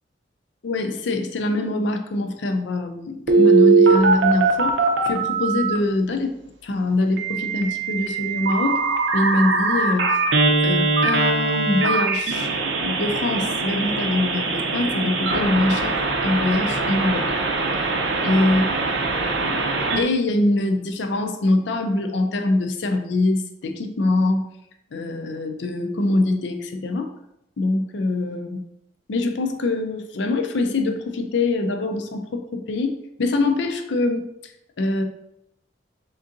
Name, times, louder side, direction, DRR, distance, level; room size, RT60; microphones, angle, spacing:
voice 1, 0.6-4.8 5.0-6.4 6.6-8.8 9.1-10.2 10.6-12.6 12.8-17.3 18.2-18.6 19.4-19.6 19.9-24.5 24.9-27.1 27.6-28.7 29.1-35.0, left 2 dB, 70° left, 6 dB, 0.5 m, -23 dB
Telephone, 3.3-5.8 7.2-20.0, right 3 dB, 75° right, 0.6 m, -21 dB
3.8 x 3.6 x 2.6 m, 0.79 s
head